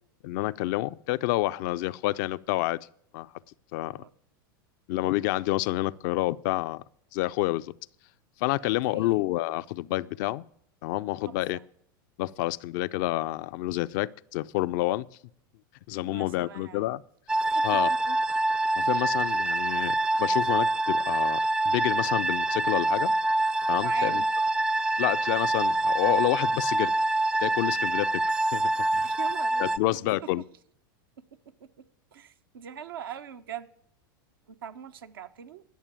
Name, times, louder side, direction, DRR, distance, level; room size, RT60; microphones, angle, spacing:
voice 1, 0.2-2.9 3.1-3.3 3.7-4.0 4.9-6.8 7.1-7.7 8.4-10.4 10.8-11.6 12.2-15.1 15.9-17.0 17.6-17.9 18.8-23.1 23.7-24.2 25.0-26.9 27.4-29.1 29.6-30.4, left 17 dB, 60° left, 0.5 m, -29 dB
voice 2, 8.6-9.3 11.3-11.6 16.0-17.0 17.5-18.2 23.8-24.4 29.0-30.3 31.6-31.8 32.1-33.7 34.5-35.6, right 9 dB, 85° right, 1.0 m, -42 dB
sound 1, 17.3-29.8, right 2 dB, 10° right, 0.4 m, -26 dB
11.5 x 6.8 x 8.8 m
hypercardioid pair, 105°, 12 cm